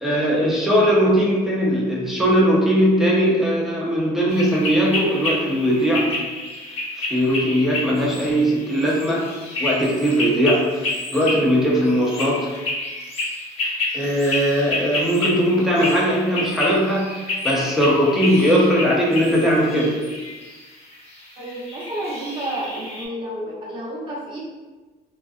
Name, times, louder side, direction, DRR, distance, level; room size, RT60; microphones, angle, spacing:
voice 1, 0.0-6.1 7.0-9.3 9.6-12.5 13.6-20.0, equal, ahead, -5 dB, 0.6 m, -19 dB
sound 1, 4.3-23.1, left 2 dB, 35° left, 0.7 m, -29 dB
voice 2, 21.4-24.4, right 1 dB, 30° right, -7 dB, 0.9 m, -30 dB
2.4 x 2.3 x 2.4 m, 1.3 s
cardioid pair, 110°, 17 cm